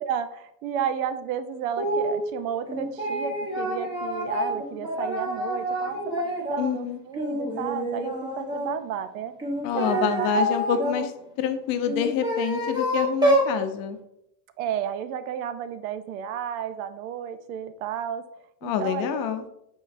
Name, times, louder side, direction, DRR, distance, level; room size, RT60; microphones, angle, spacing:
voice 1, 0.0-9.3 9.8-10.4 14.6-18.2 18.6-19.3, right 8 dB, 75° right, 11 dB, 0.6 m, -32 dB
sound 1, 1.8-2.2 2.7-6.7 7.1-8.7 9.4-11.0 11.8-13.5, equal, 10° right, 1.0 m, -27 dB
voice 2, 6.6-7.0 9.6-11.1 11.4-14.0 18.6-19.4, left 8 dB, 55° left, 9 dB, 0.6 m, -27 dB
5.0 x 3.9 x 2.6 m, 0.80 s
supercardioid pair, 110°, 42 cm